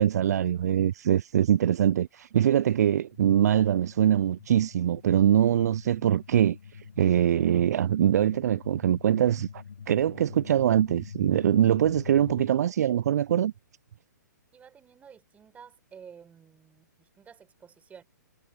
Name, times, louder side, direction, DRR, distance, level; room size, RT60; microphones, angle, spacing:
voice 1, 0.0-6.6 7.0-13.5, right 10 dB, 55° right, 0.4 m, -23 dB
sound 1, 3.1-12.5, left 6 dB, 70° left, 0.9 m, -45 dB
voice 2, 14.5-18.0, right 7 dB, 15° right, 6.1 m, -51 dB
figure-of-eight pair, 125°, 10 cm